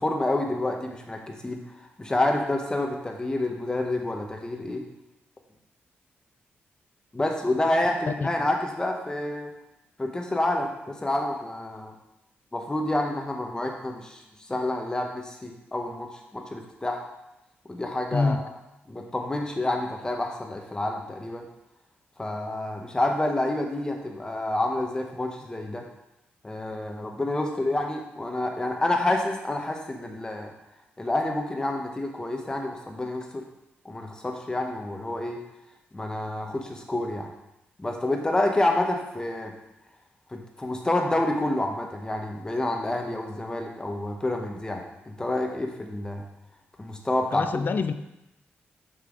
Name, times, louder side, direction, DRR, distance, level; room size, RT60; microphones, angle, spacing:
voice 1, 0.0-1.6 2.0-4.8 7.1-9.5 10.0-11.9 12.5-14.2 14.5-17.0 17.7-18.6 18.9-21.4 22.2-25.8 26.4-30.5 31.0-33.4 33.8-35.4 35.9-37.3 37.8-39.5 40.3-44.8 45.2-46.2 46.8-47.8, left 1 dB, 20° left, 2 dB, 1.1 m, -28 dB
voice 2, 47.3-47.9, left 4 dB, 50° left, 11 dB, 0.5 m, -25 dB
6.6 x 5.6 x 3.9 m, 0.90 s
cardioid pair, 90°, 4 cm